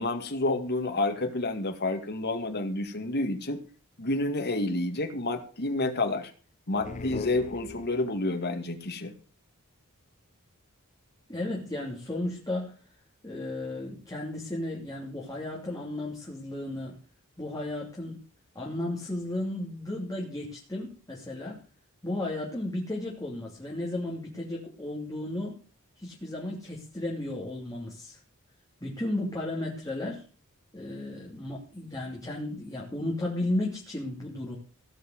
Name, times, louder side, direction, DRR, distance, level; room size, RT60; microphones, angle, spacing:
voice 1, 0.0-3.6 4.0-6.3 6.7-9.1, left 2 dB, 50° left, 6 dB, 2.1 m, -29 dB
sound 1, 6.7-8.3, left 4 dB, 35° left, 0.5 m, -39 dB
voice 2, 11.3-12.8 13.2-17.0 17.4-18.2 18.5-21.6 22.0-25.6 26.0-28.2 28.8-30.2 30.7-34.6, left 1 dB, 15° left, -3 dB, 2.9 m, -34 dB
17.0 x 5.8 x 7.9 m, 0.39 s
head